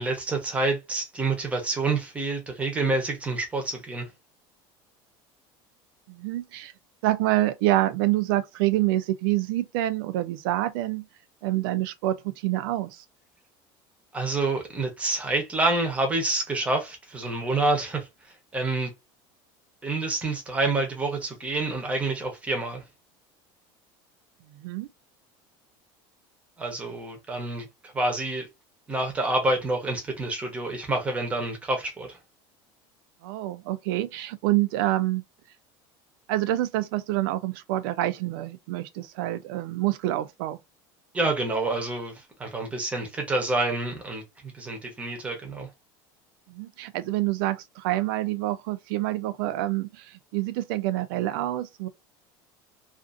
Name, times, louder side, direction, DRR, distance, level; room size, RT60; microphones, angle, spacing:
voice 1, 0.0-4.1 14.1-18.1 18.5-18.9 19.8-22.8 26.6-28.5 28.9-32.2 41.1-45.7, right 2 dB, 10° right, 0.7 m, -28 dB
voice 2, 6.1-6.7 7.0-11.1 11.4-13.0 24.5-24.9 33.2-35.2 36.3-40.6 46.5-51.9, right 15 dB, 80° right, 0.5 m, -27 dB
2.5 x 2.5 x 2.4 m
cardioid pair, 175°, 12 cm